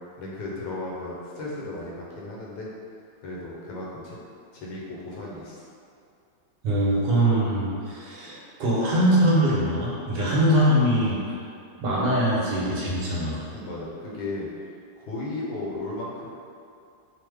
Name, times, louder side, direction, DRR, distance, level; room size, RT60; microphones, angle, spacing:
voice 1, 0.2-2.7 3.2-4.2 4.5-5.6 11.7-11.8 13.5-14.5 15.0-16.3, left 2 dB, 75° left, -4 dB, 1.2 m, -35 dB
voice 2, 6.6-11.4 11.8-13.4, right 1 dB, 75° right, -6 dB, 1.2 m, -22 dB
3.1 x 2.0 x 3.3 m, 2.4 s
omnidirectional pair, 2.0 m